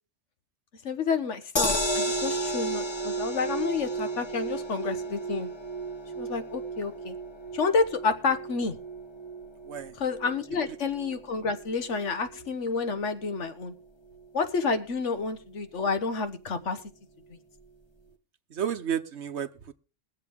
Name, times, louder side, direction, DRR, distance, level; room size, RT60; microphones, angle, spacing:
voice 1, 0.8-5.5 6.2-7.1 7.5-8.8 10.0-13.7 14.3-16.8, left 4 dB, 70° left, 10 dB, 1.5 m, -29 dB
sound 1, 1.6-13.8 14.2-14.3 14.6-14.7, right 1 dB, 25° left, 1.2 m, -33 dB
voice 2, 18.5-19.7, right 8 dB, 65° right, 9 dB, 1.2 m, -32 dB
21.5 x 7.5 x 3.6 m, 0.34 s
omnidirectional pair, 1.3 m